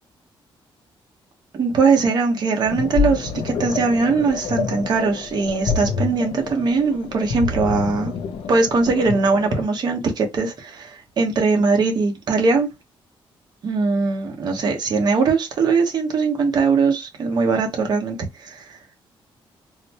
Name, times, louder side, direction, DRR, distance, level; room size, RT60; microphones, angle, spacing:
voice 1, 1.5-8.1 8.5-12.7 13.6-18.8, right 4 dB, 50° right, 1.0 m, -20 dB
sound 1, 2.6-9.6, left 6 dB, 85° left, 0.5 m, -27 dB
3.9 x 2.1 x 2.9 m
wide cardioid pair, 170°, 9 cm